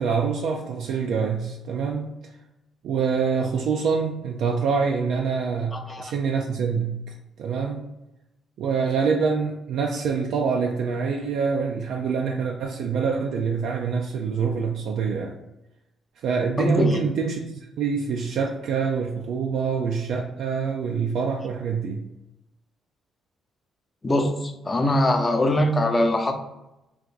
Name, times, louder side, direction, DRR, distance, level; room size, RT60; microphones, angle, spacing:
voice 1, 0.0-2.1 2.8-7.9 8.6-15.4 16.2-22.1, right 5 dB, 75° right, 1 dB, 0.4 m, -26 dB
voice 2, 5.7-6.1 16.6-17.0 24.0-26.3, left 1 dB, 25° left, 4 dB, 0.6 m, -22 dB
3.7 x 2.6 x 4.6 m, 0.94 s
cardioid pair, 90°, 0 cm